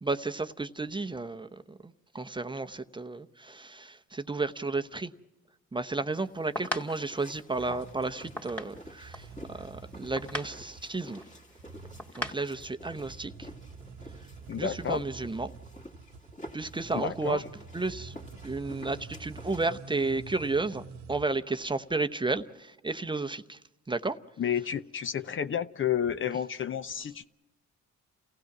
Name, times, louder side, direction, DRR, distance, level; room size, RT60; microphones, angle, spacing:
voice 1, 0.0-5.1 5.7-11.2 12.1-13.5 14.6-15.5 16.5-17.4 17.7-18.2 18.4-23.6 23.9-24.2, right 3 dB, 15° right, 0.8 m, -32 dB
sound 1, 6.2-12.5, left 1 dB, 5° left, 2.3 m, -40 dB
sound 2, 6.8-19.7, left 1 dB, 25° left, 2.5 m, -50 dB
sound 3, 7.5-21.3, right 4 dB, 65° right, 1.0 m, -48 dB
voice 2, 14.5-15.0 16.9-17.4 24.4-27.3, left 8 dB, 40° left, 0.7 m, -31 dB
29.5 x 16.0 x 6.0 m
cardioid pair, 90°, 30 cm